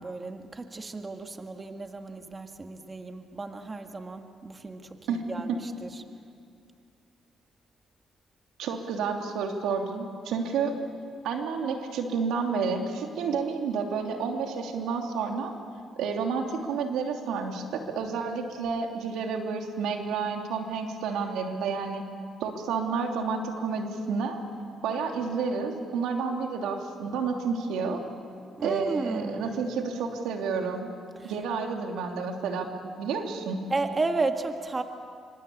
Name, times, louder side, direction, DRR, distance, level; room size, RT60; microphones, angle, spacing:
voice 1, 0.0-6.0 28.6-29.7 31.2-31.3 33.7-34.8, right 3 dB, 25° right, 5 dB, 1.7 m, -33 dB
voice 2, 8.6-10.7 11.2-15.5 16.0-22.0 22.4-24.4 24.8-28.0 28.6-30.9 31.2-33.6, right 5 dB, 90° right, 3 dB, 2.9 m, -30 dB
26.5 x 25.0 x 8.5 m, 2.3 s
cardioid pair, 90°, 0 cm